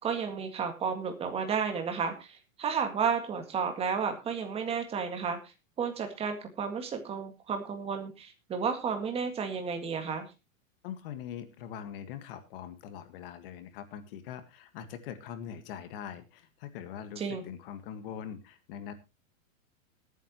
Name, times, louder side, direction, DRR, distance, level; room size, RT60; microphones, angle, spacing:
voice 1, 0.0-5.4 5.8-10.3 17.2-17.4, right 6 dB, 15° right, 5 dB, 2.0 m, -32 dB
voice 2, 10.8-18.9, left 9 dB, 40° left, 9 dB, 1.7 m, -42 dB
21.5 x 9.2 x 3.0 m, 0.28 s
supercardioid pair, 165°, 41 cm